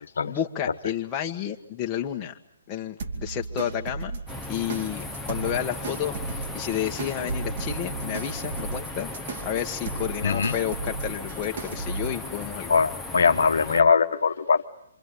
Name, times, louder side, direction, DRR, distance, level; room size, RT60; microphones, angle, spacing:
voice 1, 0.2-2.3 2.7-4.2 4.5-9.1 9.4-12.7, left 9 dB, 25° left, 2 dB, 1.7 m, -31 dB
sound 1, 3.0-12.1, right 4 dB, 50° right, 2.8 m, -36 dB
sound 2, 4.3-13.8, left 2 dB, ahead, 1.5 m, -37 dB
voice 2, 10.2-10.5 12.7-14.6, left 5 dB, 65° left, 6 dB, 1.4 m, -21 dB
27.0 x 26.0 x 8.5 m, 0.73 s
figure-of-eight pair, 135°, 0 cm